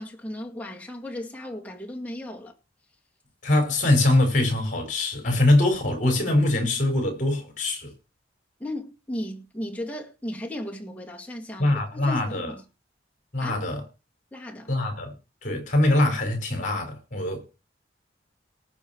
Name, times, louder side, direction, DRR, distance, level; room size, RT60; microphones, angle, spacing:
voice 1, 0.0-2.5 8.6-12.6 13.4-13.5 14.3-14.7, left 1 dB, 10° left, 2.1 m, -35 dB
voice 2, 3.4-7.9 11.6-12.5 13.3-13.8 14.7-15.1 15.4-17.4, left 1 dB, 40° left, 5.6 m, -23 dB
19.0 x 7.0 x 4.6 m
head